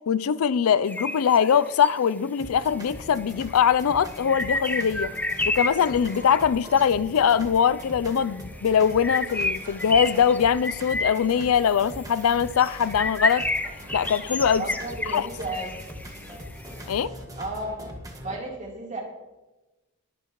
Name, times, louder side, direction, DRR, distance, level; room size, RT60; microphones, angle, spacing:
voice 1, 0.1-5.1 5.5-13.5 13.9-14.6 15.1-15.3 16.9-17.1, left 7 dB, 70° left, 0.4 m, -22 dB
sound 1, 0.9-1.9 2.8-2.9 3.2-6.8 7.6-7.8 8.1-16.8, left 2 dB, 10° left, 0.5 m, -31 dB
sound 2, 2.4-18.4, equal, 15° right, 1.7 m, -41 dB
voice 2, 14.6-15.7 17.4-17.8 18.1-19.0, right 2 dB, 35° right, 3.4 m, -33 dB
21.5 x 9.4 x 3.0 m
head